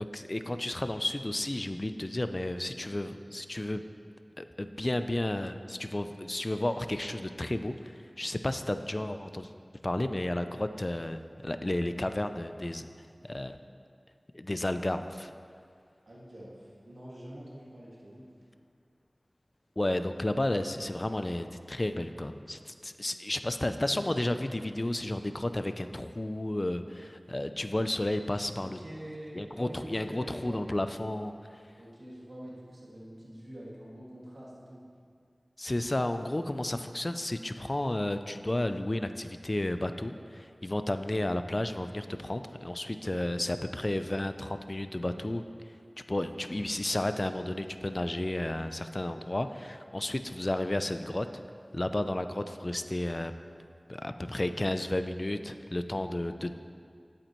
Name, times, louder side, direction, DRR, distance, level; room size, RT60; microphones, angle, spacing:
voice 1, 0.0-3.8 4.4-9.5 9.8-12.9 13.2-13.6 14.3-15.3 19.8-28.8 29.3-31.3 35.6-45.4 46.1-51.4 51.7-53.3 53.9-56.5, left 1 dB, 40° left, 9 dB, 0.4 m, -32 dB
voice 2, 16.1-18.3 28.6-30.6 31.8-34.8, right 1 dB, 80° right, -6 dB, 2.0 m, -46 dB
10.5 x 8.6 x 3.0 m, 2.2 s
wide cardioid pair, 45°, 0 cm